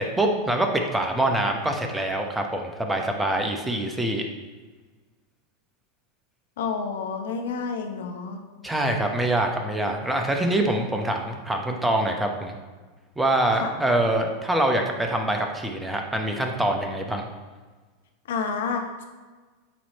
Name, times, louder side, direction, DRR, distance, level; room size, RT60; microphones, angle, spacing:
voice 1, 0.0-4.2 8.6-12.5 13.2-17.3, right 1 dB, 10° right, 3 dB, 0.9 m, -25 dB
voice 2, 6.6-8.4 13.6-13.7 18.3-19.0, left 5 dB, 70° left, 4 dB, 0.7 m, -29 dB
8.4 x 3.1 x 4.1 m, 1.4 s
hypercardioid pair, 95°, 0 cm